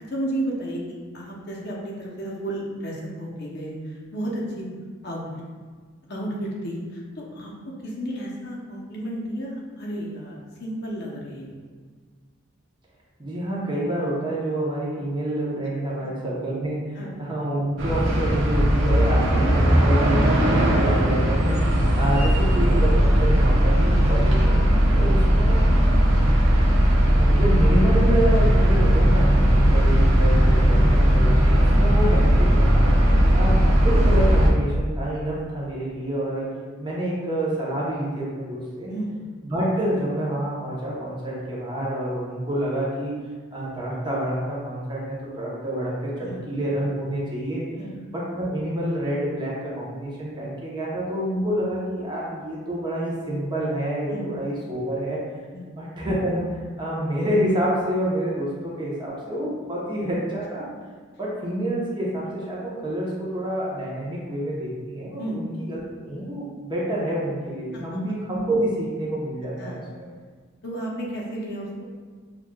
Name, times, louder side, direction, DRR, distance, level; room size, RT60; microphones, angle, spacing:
voice 1, 0.1-4.7 5.0-5.4 6.1-11.6 17.0-17.2 24.7-24.9 29.4-29.6 31.9-32.0 33.0-33.2 38.9-39.2 46.2-46.4 47.8-47.9 54.1-54.3 55.5-55.7 65.2-65.4 67.7-68.0 69.6-69.9 70.6-71.8, right 1 dB, 55° left, -4 dB, 0.7 m, -33 dB
voice 2, 13.2-24.6 24.9-25.6 27.2-32.9 33.3-33.5 33.8-36.5 36.8-38.9 39.4-43.2 43.5-47.7 48.1-55.2 55.7-60.7 61.2-70.1, right 1 dB, 25° right, -6 dB, 0.8 m, -28 dB
sound 1, 17.8-34.5, equal, 65° right, 0.6 m, -18 dB
5.9 x 2.4 x 2.2 m, 1.5 s
head